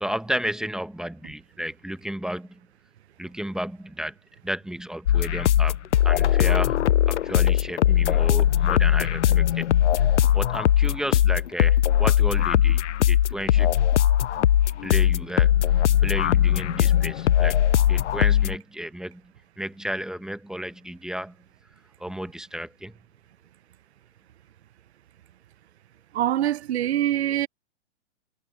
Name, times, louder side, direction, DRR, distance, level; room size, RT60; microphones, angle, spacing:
voice 1, 0.0-2.6 3.2-4.1 4.4-6.8 7.1-9.7 9.9-12.8 13.1-13.8 14.8-15.7 16.0-17.6 17.8-19.2 19.6-21.3 22.0-22.9, equal, ahead, 1.1 m, -33 dB
sound 1, 5.1-18.6, left 11 dB, 80° left, 0.6 m, -20 dB
voice 2, 26.1-27.5, right 12 dB, 65° right, 0.8 m, -24 dB
hypercardioid pair, 125°, 34 cm